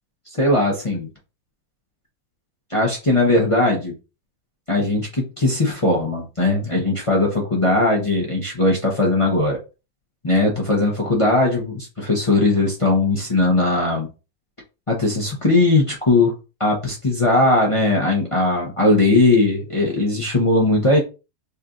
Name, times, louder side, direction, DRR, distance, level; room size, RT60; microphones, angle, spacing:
voice 1, 0.4-1.1 2.7-3.9 4.7-9.6 10.2-14.1 14.9-16.3 16.6-21.0, left 2 dB, 30° left, -2 dB, 0.6 m, -19 dB
5.4 x 2.6 x 2.4 m, 0.30 s
omnidirectional pair, 1.7 m